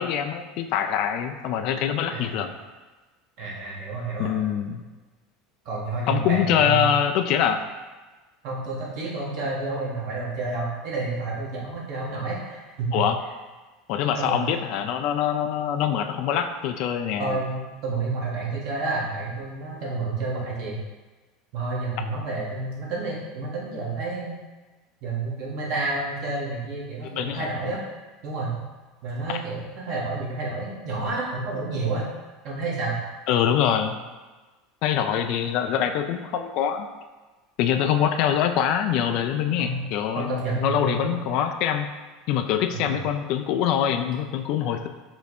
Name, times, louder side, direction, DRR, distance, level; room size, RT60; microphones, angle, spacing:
voice 1, 0.0-2.5 4.2-4.8 6.1-7.6 12.9-13.2 13.9-17.4 27.0-27.5 29.3-29.4 33.3-34.0 34.8-36.9 37.6-41.9 42.3-44.9, left 9 dB, 55° left, 7 dB, 0.3 m, -24 dB
voice 2, 2.1-2.5 3.4-4.4 5.6-7.0 8.4-13.0 14.1-14.5 17.2-20.8 21.5-24.3 25.0-27.8 28.2-28.5 29.0-32.1 32.4-33.0 39.6-39.9 40.1-41.1 42.7-43.0, right 3 dB, 55° right, -4 dB, 1.2 m, -30 dB
4.4 x 2.2 x 4.2 m, 1.2 s
figure-of-eight pair, 75°, 0 cm